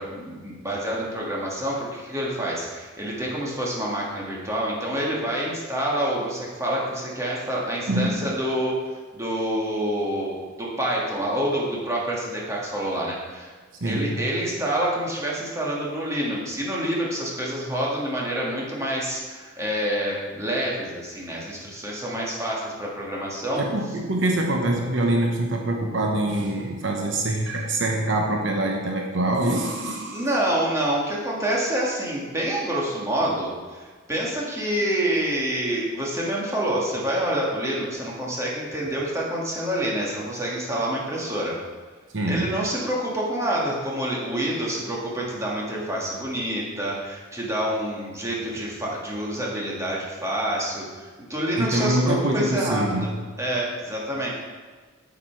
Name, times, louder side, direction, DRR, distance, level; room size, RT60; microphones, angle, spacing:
voice 1, 0.0-8.8 9.1-13.5 13.8-23.6 30.1-41.6 42.3-54.3, right 1 dB, 15° right, -4 dB, 2.2 m, -27 dB
voice 2, 13.8-14.2 23.6-30.3 42.1-42.5 51.6-53.1, right 1 dB, 65° right, 1 dB, 1.0 m, -24 dB
8.5 x 8.3 x 4.7 m, 1.4 s
head